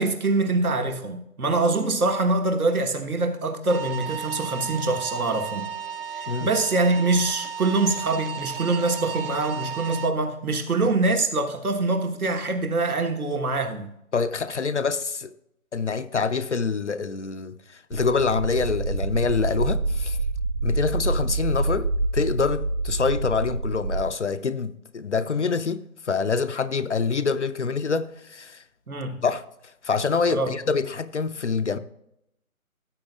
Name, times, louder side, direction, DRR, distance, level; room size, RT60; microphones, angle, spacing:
voice 1, 0.0-5.7 6.1-13.9 28.9-29.2 30.3-30.5, right 3 dB, 80° right, 1.4 m, -24 dB
sound 1, 3.7-10.1, right 7 dB, 40° right, 0.8 m, -34 dB
voice 2, 14.1-15.3 15.7-20.2 20.6-28.6 29.2-29.4 29.8-31.8, left 5 dB, 55° left, 0.6 m, -26 dB
sound 2, 17.9-24.0, right 3 dB, 60° right, 1.4 m, -27 dB
15.5 x 8.0 x 2.4 m
figure-of-eight pair, 155°, 43 cm